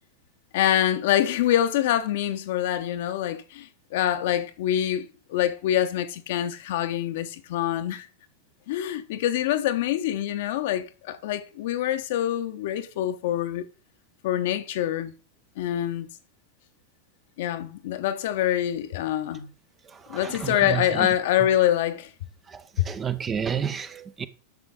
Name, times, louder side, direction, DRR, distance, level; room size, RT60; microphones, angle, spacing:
voice 1, 0.5-8.1 8.7-13.6 14.2-15.1 15.6-16.1 17.4-19.5 20.1-22.1 22.8-22.9, left 11 dB, 55° left, 0.9 m, -25 dB
voice 2, 19.8-21.1 22.5-24.3, right 7 dB, 20° right, 0.7 m, -31 dB
10.5 x 6.9 x 3.7 m
figure-of-eight pair, 90°, 0 cm